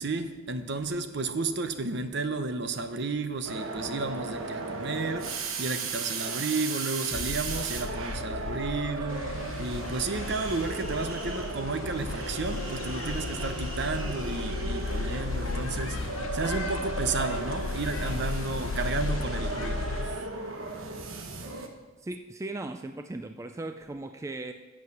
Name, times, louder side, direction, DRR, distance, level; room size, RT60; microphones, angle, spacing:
voice 1, 0.0-16.0 16.3-20.2, right 3 dB, 60° right, 9 dB, 0.7 m, -32 dB
sound 1, 3.4-21.7, right 4 dB, 90° right, 1.1 m, -36 dB
sound 2, 7.1-20.2, left 3 dB, 65° left, 0.5 m, -35 dB
sound 3, 9.1-20.0, left 3 dB, 90° left, 1.0 m, -41 dB
voice 2, 22.0-24.5, right 2 dB, 15° right, 7 dB, 0.3 m, -37 dB
8.2 x 7.6 x 6.5 m, 1.3 s
head